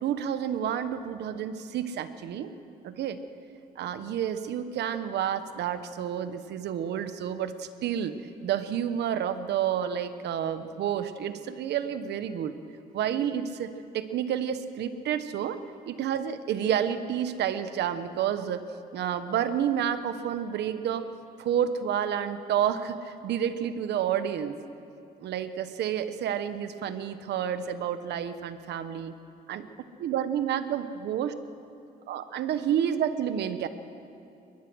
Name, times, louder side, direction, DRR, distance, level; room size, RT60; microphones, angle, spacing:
voice 1, 0.0-2.5 2.8-3.2 3.8-8.1 8.4-12.5 12.9-13.7 13.9-15.6 15.8-18.6 18.9-21.1 21.4-24.5 25.2-29.1 29.5-29.6 30.0-31.3 32.1-33.7, right 9 dB, 85° right, 11 dB, 1.1 m, -29 dB
23.0 x 20.5 x 6.3 m, 2.6 s
cardioid pair, 115°, 17 cm